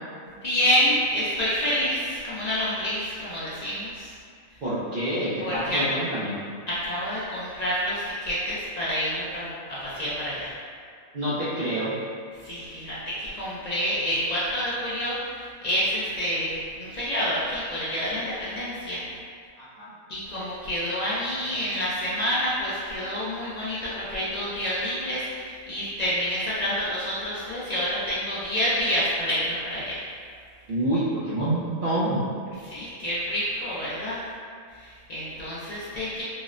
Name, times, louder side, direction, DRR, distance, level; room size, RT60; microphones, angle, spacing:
voice 1, 0.4-4.1 5.4-5.8 6.7-10.5 12.4-19.0 20.1-30.0 32.6-34.2 34.8-36.2, equal, 80° left, -10 dB, 0.3 m, -28 dB
voice 2, 4.6-6.3 11.1-11.9 19.6-19.9 30.7-32.2, right 1 dB, 60° right, -10 dB, 0.5 m, -27 dB
3.7 x 2.0 x 2.4 m, 2.1 s
omnidirectional pair, 1.4 m